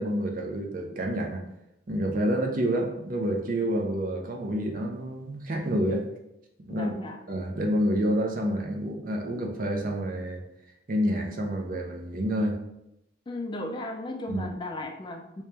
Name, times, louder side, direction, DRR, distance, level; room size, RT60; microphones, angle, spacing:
voice 1, 0.0-1.4 1.9-6.0 6.7-6.9 7.3-10.4 10.9-12.6 14.3-14.4, equal, 50° right, 2 dB, 0.5 m, -28 dB
voice 2, 6.7-7.2 13.3-15.4, left 1 dB, 25° left, 3 dB, 0.3 m, -35 dB
3.1 x 2.9 x 3.3 m, 0.85 s
head